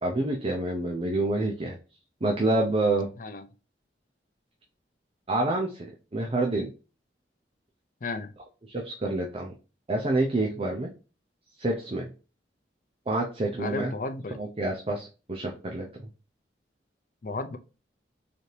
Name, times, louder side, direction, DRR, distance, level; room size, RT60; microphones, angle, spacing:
voice 1, 0.0-1.8 2.2-3.1 5.3-6.7 8.7-9.5 9.9-10.9 11.6-12.1 13.1-13.9 14.4-16.1, right 2 dB, 35° right, 0 dB, 0.6 m, -28 dB
voice 2, 8.0-8.3 13.6-14.4 17.2-17.6, left 3 dB, 50° left, 8 dB, 0.5 m, -33 dB
4.1 x 2.7 x 3.2 m, 0.33 s
head